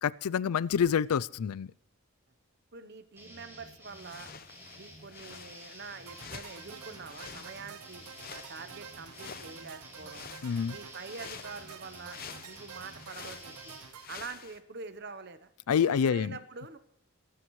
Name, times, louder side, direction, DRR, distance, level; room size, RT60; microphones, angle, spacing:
voice 1, 0.0-1.7 10.4-10.7 15.7-16.4, left 7 dB, 85° left, 22 dB, 0.4 m, -27 dB
voice 2, 2.7-4.3 4.7-8.0 8.3-10.3 10.7-13.7 14.1-15.5 15.9-16.8, right 4 dB, 45° right, 11 dB, 0.9 m, -45 dB
sound 1, 3.2-13.8, equal, 10° right, 5.7 m, -51 dB
sound 2, 3.9-14.6, left 7 dB, 40° left, 0.7 m, -49 dB
sound 3, 6.1-14.1, right 8 dB, 85° right, 0.5 m, -49 dB
23.0 x 13.0 x 3.1 m, 0.81 s
head